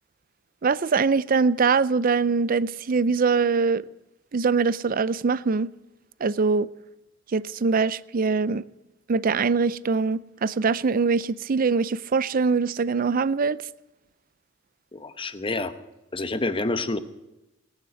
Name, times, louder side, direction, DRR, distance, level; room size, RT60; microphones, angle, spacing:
voice 1, 0.6-3.8 4.3-5.7 6.2-6.7 7.3-8.6 9.1-13.6, right 4 dB, 45° right, 0.5 m, -23 dB
voice 2, 14.9-15.7 16.1-17.0, left 2 dB, 25° left, 0.9 m, -28 dB
18.5 x 9.6 x 7.7 m
head